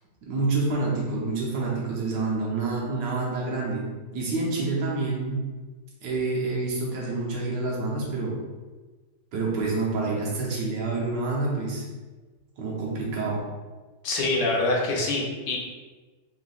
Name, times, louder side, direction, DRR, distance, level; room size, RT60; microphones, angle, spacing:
voice 1, 0.3-3.9 4.1-5.4 6.0-8.4 9.3-11.8 12.6-13.4, right 3 dB, 60° right, -4 dB, 1.4 m, -27 dB
voice 2, 14.0-15.6, left 2 dB, 65° left, -2 dB, 1.2 m, -25 dB
3.8 x 3.7 x 2.4 m, 1.3 s
omnidirectional pair, 2.4 m